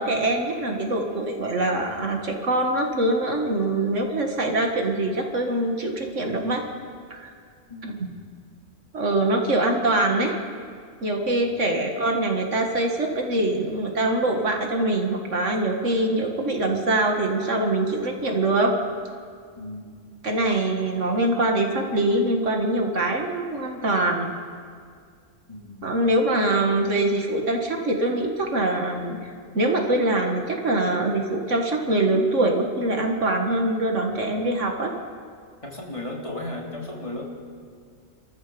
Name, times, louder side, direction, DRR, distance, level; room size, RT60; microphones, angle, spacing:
voice 1, 0.0-6.6 7.1-7.3 7.8-8.1 8.9-10.4 11.0-18.8 20.2-24.3 25.8-35.0, right 2 dB, 70° right, 2 dB, 2.2 m, -24 dB
voice 2, 7.7-8.0 11.4-11.5 19.6-19.9 25.5-25.9 35.6-37.2, left 1 dB, 25° left, -2 dB, 3.2 m, -35 dB
27.5 x 14.5 x 7.0 m, 2.1 s
omnidirectional pair, 1.3 m